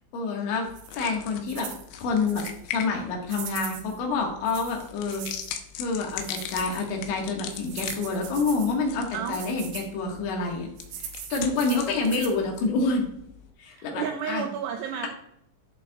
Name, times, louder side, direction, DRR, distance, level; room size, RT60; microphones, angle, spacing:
voice 1, 0.1-0.7 0.9-1.7 2.0-5.2 5.8-10.7 11.3-13.0 13.6-14.5, left 4 dB, 70° left, 0 dB, 3.9 m, -27 dB
sound 1, 0.6-13.5, left 9 dB, 90° left, 3.5 m, -41 dB
sound 2, 0.8-1.0 1.5-1.9 2.3-2.6 3.3-4.0 4.5-5.6 6.1-6.9 7.5-8.8 9.3-9.9 10.8-12.4, right 8 dB, 70° right, 2.6 m, -40 dB
voice 2, 13.7-15.1, right 8 dB, 90° right, 4 dB, 2.4 m, -31 dB
14.0 x 6.8 x 2.4 m, 0.71 s
omnidirectional pair, 5.6 m